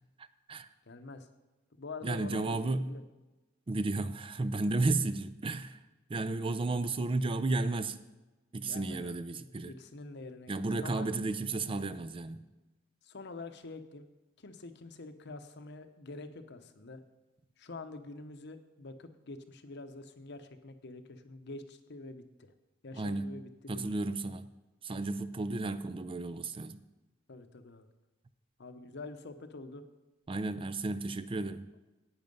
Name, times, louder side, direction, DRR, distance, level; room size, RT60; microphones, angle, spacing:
voice 1, 0.9-1.3 1.7-3.0 4.6-4.9 8.6-9.2 9.6-11.1 13.0-14.1 14.4-17.0 17.6-22.5 22.8-24.1 27.3-27.9 28.6-29.8, left 3 dB, 60° left, 0.9 m, -46 dB
voice 2, 2.0-2.9 3.7-5.8 6.1-8.0 8.5-9.7 10.5-12.4 23.0-23.3 23.7-24.5 24.8-26.8 30.3-31.7, right 2 dB, 25° right, 0.4 m, -33 dB
10.5 x 8.9 x 5.4 m
head